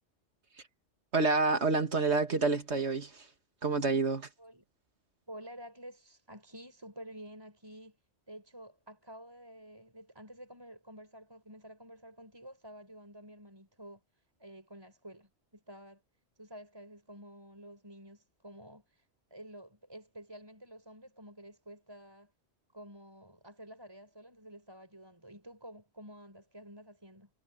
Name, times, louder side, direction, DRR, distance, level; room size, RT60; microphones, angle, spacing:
voice 1, 1.1-3.2 3.6-4.3, right 3 dB, 75° right, 2.4 m, -28 dB
voice 2, 5.3-8.0 8.3-14.0 14.4-16.0 16.4-19.1 19.3-22.3 22.7-27.3, equal, 20° right, 5.6 m, -50 dB
omnidirectional pair, 1.2 m